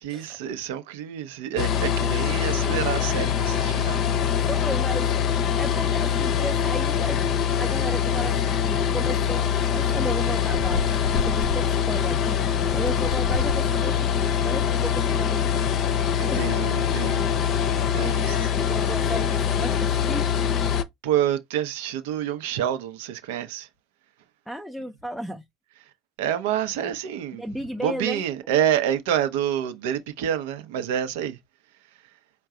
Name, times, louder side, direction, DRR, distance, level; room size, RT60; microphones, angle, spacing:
voice 1, 0.0-4.2 16.2-17.3 17.9-18.5 21.0-23.7 26.2-27.4 27.8-31.4, right 10 dB, 75° right, 0.7 m, -28 dB
sound 1, 1.6-20.8, left 8 dB, 50° left, 0.6 m, -24 dB
voice 2, 4.3-5.1 5.6-7.2 7.6-12.4 12.7-15.6 16.3-16.4 18.6-20.2 24.5-25.4 26.8-26.9 27.3-28.2, equal, ahead, 0.6 m, -34 dB
sound 2, 9.4-9.6 10.4-11.6 12.4-13.7 14.4-14.8, left 5 dB, 80° left, 0.3 m, -30 dB
4.6 x 2.2 x 3.7 m
hypercardioid pair, 90°, 0 cm